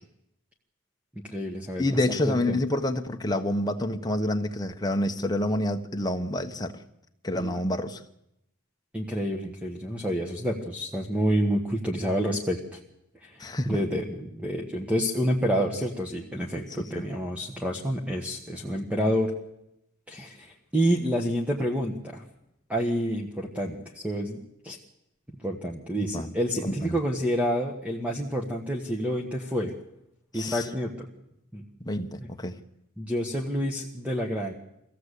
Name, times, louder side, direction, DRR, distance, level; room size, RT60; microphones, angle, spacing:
voice 1, 1.2-2.6 7.4-7.6 8.9-12.8 13.2-19.3 20.1-22.2 22.7-24.4 24.6-24.8 25.4-29.7 30.3-31.1 31.5-31.6 33.0-34.5, equal, 5° right, 1 dB, 1.5 m, -28 dB
voice 2, 1.8-6.8 7.2-8.0 13.4-13.8 15.7-15.8 16.9-17.1 26.0-26.3 26.6-27.0 30.3-30.7 31.8-32.6, left 1 dB, 20° left, 5 dB, 1.2 m, -28 dB
23.5 x 16.0 x 8.4 m, 0.82 s
head